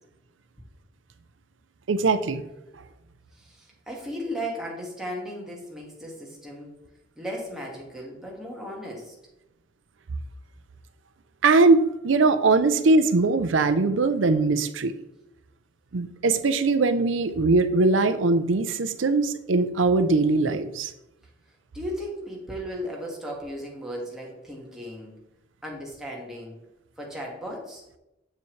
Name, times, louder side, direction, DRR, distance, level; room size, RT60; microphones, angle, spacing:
voice 1, 1.9-2.4 11.4-14.9 15.9-20.9, right 3 dB, 75° right, 11 dB, 0.6 m, -21 dB
voice 2, 3.3-6.7 7.2-9.1 21.7-25.1 25.6-26.6 27.0-27.8, equal, 5° right, -3 dB, 1.7 m, -36 dB
7.0 x 6.9 x 3.2 m, 0.93 s
head